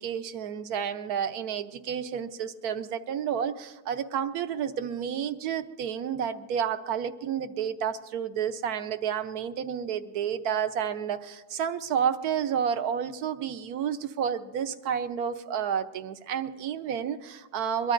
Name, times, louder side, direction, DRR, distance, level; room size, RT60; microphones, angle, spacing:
voice 1, 0.0-17.9, right 8 dB, 70° right, 9 dB, 1.3 m, -30 dB
23.0 x 22.5 x 2.6 m, 1.2 s
omnidirectional pair, 1.7 m